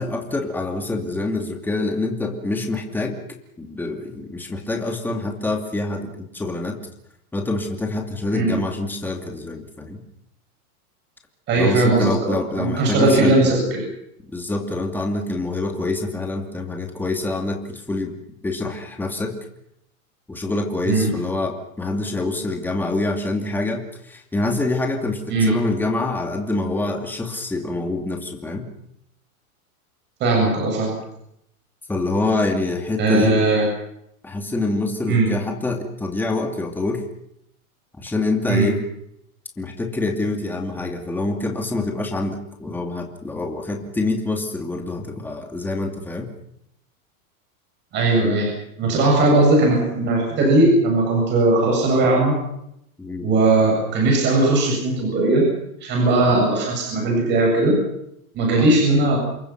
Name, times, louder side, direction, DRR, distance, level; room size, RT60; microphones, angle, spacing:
voice 1, 0.0-3.2 3.6-6.8 7.3-10.0 11.6-13.5 14.3-18.1 18.4-19.4 20.3-28.7 31.9-33.4 34.2-37.0 38.0-38.8 39.6-46.3 53.0-53.3 56.2-56.4 58.6-58.7, left 2 dB, 5° left, 2 dB, 2.6 m, -26 dB
voice 2, 11.5-13.8 20.9-21.1 25.3-25.5 30.2-31.0 33.0-33.6 35.1-35.3 38.5-38.7 47.9-52.4 53.2-55.5 55.8-57.8 58.3-59.2, right 2 dB, 25° right, 0 dB, 7.9 m, -18 dB
28.0 x 23.5 x 6.0 m, 0.76 s
supercardioid pair, 165°, 44 cm